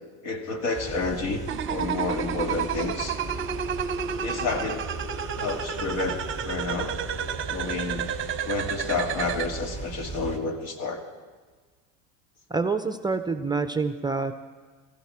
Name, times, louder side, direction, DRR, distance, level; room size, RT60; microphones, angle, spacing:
voice 1, 0.2-1.4 1.7-3.2 4.2-4.9 5.4-7.0 7.5-8.1 8.4-11.0, left 3 dB, 70° left, 4 dB, 2.3 m, -30 dB
sound 1, 0.7-10.4, right 2 dB, 15° left, 1.7 m, -37 dB
sound 2, 1.5-9.5, right 8 dB, 30° right, 0.9 m, -31 dB
voice 2, 12.5-14.3, right 4 dB, 10° right, 9 dB, 0.5 m, -27 dB
17.5 x 15.0 x 4.8 m, 1.4 s
supercardioid pair, 110°, 41 cm